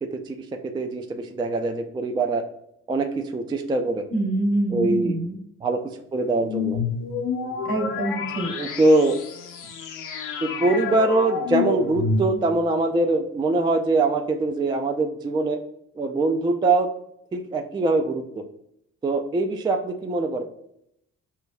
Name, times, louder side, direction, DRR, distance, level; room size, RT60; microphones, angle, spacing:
voice 1, 0.0-2.4 2.9-4.0 4.7-5.2 5.6-5.8 6.1-6.8 8.5-9.2 10.4-15.6 16.0-16.9 17.3-18.4 19.0-20.4, right 2 dB, 15° right, 4 dB, 0.3 m, -23 dB
voice 2, 4.1-5.4 7.6-8.5, right 1 dB, 65° right, 0 dB, 1.2 m, -25 dB
sound 1, 6.4-12.7, left 5 dB, 55° left, 0.6 m, -29 dB
5.6 x 2.2 x 2.2 m, 0.75 s
hypercardioid pair, 50°, 38 cm